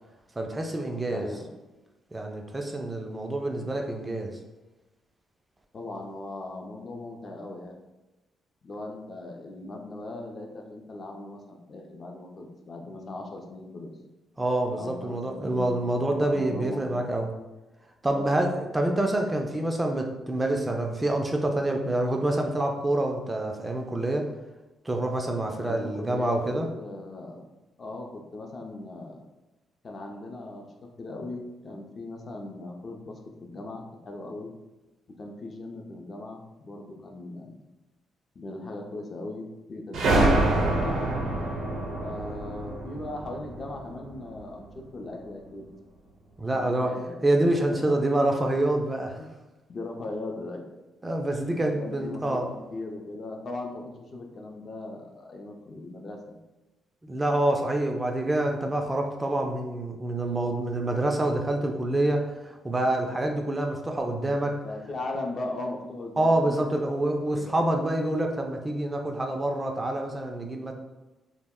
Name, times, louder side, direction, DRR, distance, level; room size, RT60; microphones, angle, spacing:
voice 1, 0.4-1.3 2.1-4.4 14.4-17.3 18.0-24.3 24.9-26.7 46.4-47.0 47.2-49.2 51.0-52.4 57.0-64.6 66.2-70.7, right 1 dB, 20° right, 3 dB, 0.3 m, -27 dB
voice 2, 1.1-1.5 5.7-7.8 8.6-13.9 14.8-17.1 18.1-18.6 25.6-27.4 27.8-29.2 29.8-34.5 35.1-37.6 38.4-41.1 42.0-45.7 46.5-47.2 47.5-48.0 49.2-49.3 49.7-50.6 51.6-56.4 64.6-66.6 67.0-67.7, left 2 dB, 45° left, 2 dB, 0.5 m, -39 dB
sound 1, 39.9-44.4, right 2 dB, 75° right, 0.6 m, -26 dB
2.3 x 2.0 x 3.5 m, 1.1 s
cardioid pair, 90°, 0 cm